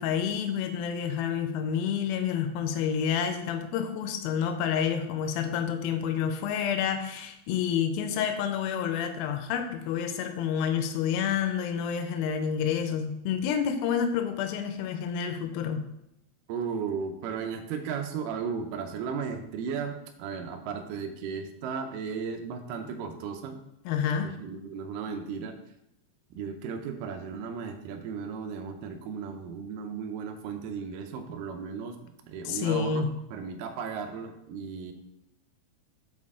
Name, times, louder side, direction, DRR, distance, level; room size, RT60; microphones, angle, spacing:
voice 1, 0.0-15.8 23.9-24.3 32.4-33.1, left 7 dB, 85° left, 7 dB, 2.2 m, -29 dB
voice 2, 16.5-23.6 24.2-25.6 26.3-33.1 33.3-34.9, right 6 dB, 85° right, 5 dB, 1.9 m, -35 dB
6.7 x 4.3 x 3.6 m, 0.83 s
omnidirectional pair, 4.6 m